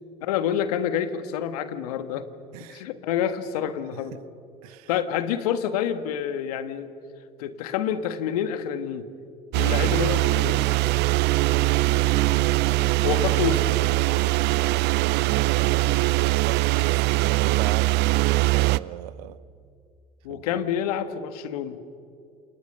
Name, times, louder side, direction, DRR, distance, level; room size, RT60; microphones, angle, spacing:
voice 1, 0.2-2.3 2.6-4.2 4.9-6.9 7.4-9.1 9.5-10.6 13.0-13.6 20.2-21.8, left 9 dB, 80° left, 10 dB, 1.6 m, -28 dB
voice 2, 2.5-2.8 4.1-4.2 4.6-4.9 16.5-17.9 18.3-19.4 20.3-20.4, right 15 dB, 80° right, 17 dB, 0.9 m, -37 dB
sound 1, 9.5-18.8, right 18 dB, 65° right, 0.5 m, -22 dB
29.0 x 27.5 x 6.7 m, 2.4 s
hypercardioid pair, 65°, 19 cm